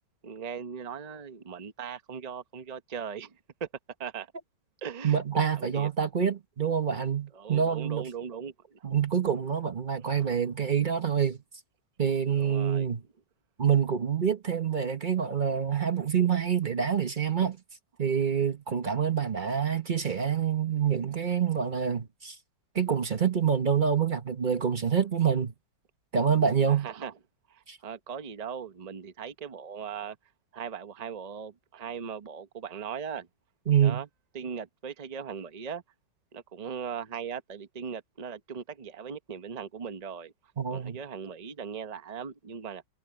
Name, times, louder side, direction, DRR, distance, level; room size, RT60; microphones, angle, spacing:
voice 1, 0.2-3.7 4.0-4.3 4.8-5.2 5.6-5.9 7.3-9.0 10.0-10.4 12.3-12.9 26.6-27.1 27.5-30.2 30.5-33.3 33.8-34.1 34.3-35.8 36.3-40.3 40.7-42.8, right 7 dB, 60° right, 0.4 m, -39 dB
voice 2, 5.0-8.1 8.8-11.4 12.0-13.0 13.6-17.6 18.0-22.4 22.7-25.5 26.1-26.9 27.7-27.8 33.7-34.0 40.6-41.0, right 7 dB, 40° right, 0.7 m, -26 dB
omnidirectional pair, 2.2 m